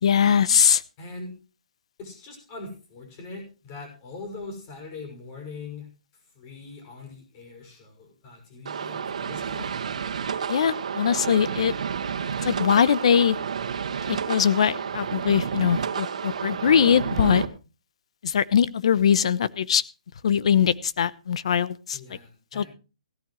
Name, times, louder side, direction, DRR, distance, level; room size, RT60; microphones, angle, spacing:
voice 1, 0.0-0.8 10.5-11.7 12.4-13.4 14.1-17.4 18.2-19.8 20.2-22.0 22.5-22.6, left 8 dB, 55° left, 17 dB, 0.9 m, -21 dB
voice 2, 1.0-1.3 2.0-5.9 6.3-9.7 21.9-22.7, left 3 dB, 25° left, 3 dB, 6.1 m, -41 dB
sound 1, 8.7-17.5, right 7 dB, 65° right, 1.8 m, -30 dB
17.0 x 13.0 x 3.1 m, 0.32 s
hypercardioid pair, 170°, 4 cm